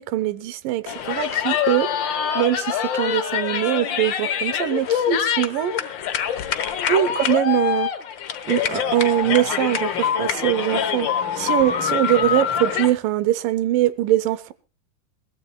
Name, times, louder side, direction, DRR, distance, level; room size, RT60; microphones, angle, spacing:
voice 1, 0.0-1.9 2.4-5.7 6.9-7.9 8.5-11.1 11.4-14.5, right 13 dB, 85° right, 2.5 m, -22 dB
sound 1, 0.9-12.9, left 8 dB, 75° left, 1.0 m, -25 dB
22.0 x 17.0 x 2.3 m
omnidirectional pair, 3.8 m